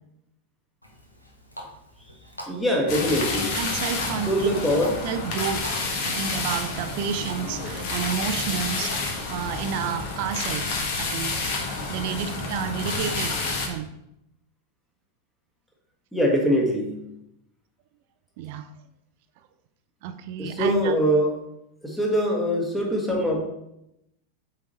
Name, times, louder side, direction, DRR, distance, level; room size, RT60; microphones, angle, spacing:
Water tap faucet, 0.8-9.0, equal, 85° left, 1.2 m, -44 dB
voice 1, 2.5-3.6 4.3-4.9 16.1-17.0 20.4-21.3 21.8-23.4, equal, 5° left, -1 dB, 1.5 m, -23 dB
sound 1, 2.9-13.7, left 3 dB, 45° left, 1.5 m, -29 dB
voice 2, 3.5-4.6 4.9-5.7 6.0-11.4 11.9-13.9 18.4-18.7 20.0-21.0, right 8 dB, 50° right, 10 dB, 0.5 m, -31 dB
7.9 x 4.1 x 4.1 m, 0.84 s
figure-of-eight pair, 90°, 0 cm